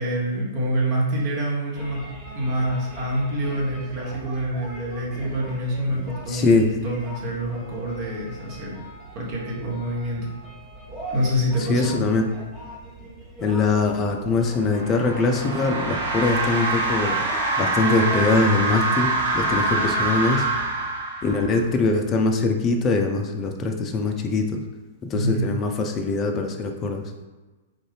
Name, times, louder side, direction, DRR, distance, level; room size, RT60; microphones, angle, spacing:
voice 1, 0.0-8.8 9.1-10.3 11.1-12.0 25.1-25.5, right 1 dB, 40° right, -3 dB, 1.1 m, -26 dB
sound 1, 1.7-20.9, right 1 dB, 10° right, 1.3 m, -40 dB
voice 2, 6.3-6.7 11.6-12.3 13.4-17.2 17.6-20.5 21.2-24.6 25.1-27.0, left 3 dB, 25° left, 3 dB, 0.4 m, -22 dB
sound 2, 14.6-21.6, right 2 dB, 75° right, 1.4 m, -25 dB
3.6 x 2.6 x 3.3 m, 1.2 s
figure-of-eight pair, 105°, 0 cm